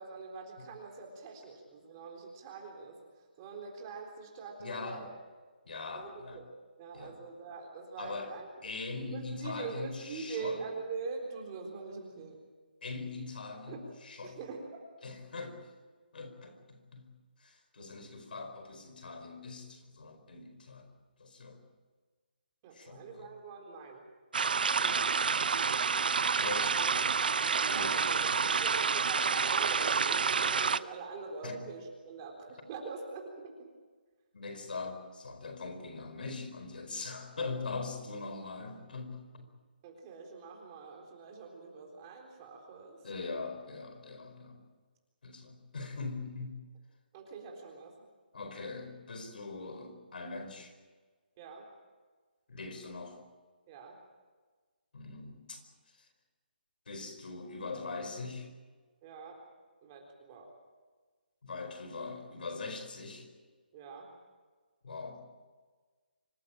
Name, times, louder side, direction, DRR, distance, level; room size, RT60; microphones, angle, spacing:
voice 1, 0.0-5.1 5.9-8.5 9.1-12.4 13.7-13.8 14.2-14.6 17.8-18.1 22.6-24.0 26.8-27.0 27.6-33.7 39.8-43.5 47.1-48.1 51.4-51.7 53.7-54.0 59.0-59.4 59.8-60.5 63.7-64.1, right 4 dB, 25° right, 1 dB, 3.9 m, -44 dB
voice 2, 4.6-5.0 5.6-6.4 6.9-7.1 8.0-8.3 8.6-10.6 12.8-14.4 15.0-15.6 16.1-17.1 17.4-20.9 21.2-21.6 22.7-23.3 24.8-25.9 26.4-26.8 27.7-28.1 31.4-31.6 34.3-39.5 43.0-44.6 45.2-46.6 48.3-50.7 52.5-53.2 54.9-55.6 55.9-56.1 56.9-58.5 61.4-63.3 64.8-65.3, left 3 dB, 65° left, 8 dB, 4.7 m, -42 dB
sound 1, 24.3-30.8, right 5 dB, 65° right, 0.7 m, -29 dB
26.0 x 15.0 x 8.9 m, 1.4 s
hypercardioid pair, 165°, 5 cm